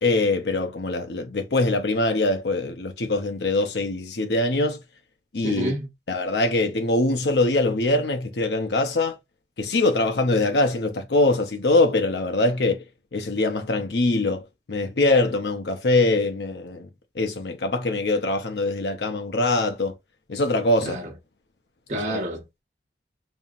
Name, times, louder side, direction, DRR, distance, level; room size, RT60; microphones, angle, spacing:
voice 1, 0.0-4.8 5.3-5.8 6.1-9.2 9.6-12.8 13.1-16.9 17.2-19.9 20.3-21.0 21.9-22.2, left 2 dB, 70° left, 0.7 m, -23 dB
voice 2, 5.4-5.9 20.8-21.1 21.9-22.6, right 1 dB, 40° right, 1.0 m, -29 dB
5.4 x 2.8 x 2.4 m
head